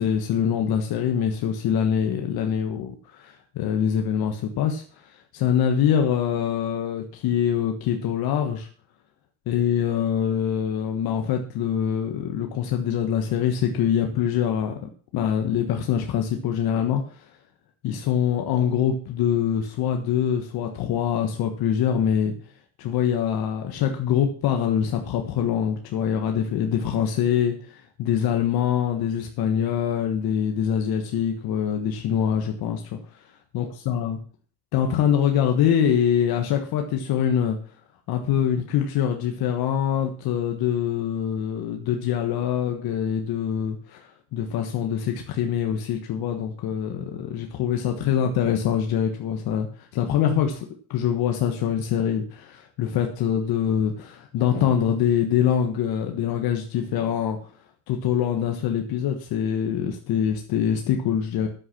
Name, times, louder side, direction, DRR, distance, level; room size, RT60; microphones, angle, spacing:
voice 1, 0.0-8.7 9.5-17.3 17.8-22.3 22.8-33.2 33.5-34.2 34.7-37.6 38.1-50.6 50.9-57.4 57.9-61.5, left 9 dB, 75° left, 4 dB, 1.4 m, -24 dB
9.6 x 7.8 x 5.9 m, 0.43 s
cardioid pair, 90°, 37 cm